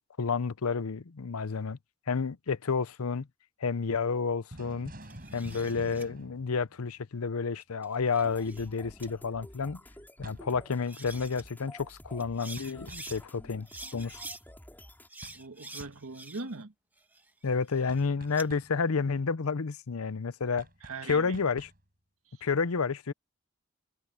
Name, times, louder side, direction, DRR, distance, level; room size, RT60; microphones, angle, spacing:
voice 1, 0.0-1.8 2.1-3.3 3.6-4.9 5.3-9.8 10.2-13.7 13.9-14.2 17.4-20.7 21.1-21.7 22.4-23.1, left 5 dB, 90° left, 0.7 m, -30 dB
sound 1, 4.5-7.3 10.2-10.6 12.6-13.2 15.2-15.5 15.8-16.1 17.9-18.8 20.6-21.8, right 1 dB, 40° right, 7.0 m, -48 dB
sound 2, 5.0-6.1 7.6-8.7 9.0-9.1 10.5-10.6 10.8-11.4 12.2-13.2 13.7-14.4 15.1-16.6 17.0-18.5, right 2 dB, 10° right, 1.9 m, -46 dB
sound 3, 8.2-15.1, left 1 dB, 10° left, 6.2 m, -51 dB
voice 2, 15.3-16.7 20.8-21.4 22.3-22.5, right 3 dB, 80° right, 1.6 m, -41 dB
head